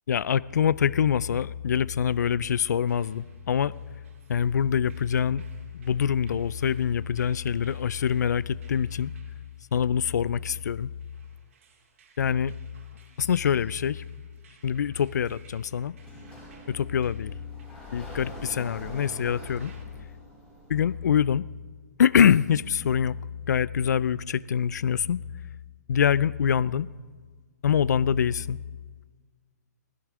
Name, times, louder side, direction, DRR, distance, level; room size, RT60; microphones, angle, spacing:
voice 1, 0.1-3.8 4.3-5.4 5.7-9.1 9.7-10.9 12.2-12.6 13.2-14.0 14.6-16.0 16.7-17.3 17.9-19.7 20.7-21.5 22.0-23.2 23.5-25.2 25.9-26.9 27.6-28.6, left 8 dB, 75° left, 0.4 m, -24 dB
sound 1, 2.5-19.8, right 6 dB, 50° right, 2.6 m, -61 dB
Sliding door, 16.0-21.0, equal, 10° left, 4.7 m, -44 dB
16.5 x 16.5 x 3.7 m
hypercardioid pair, 165°, 9 cm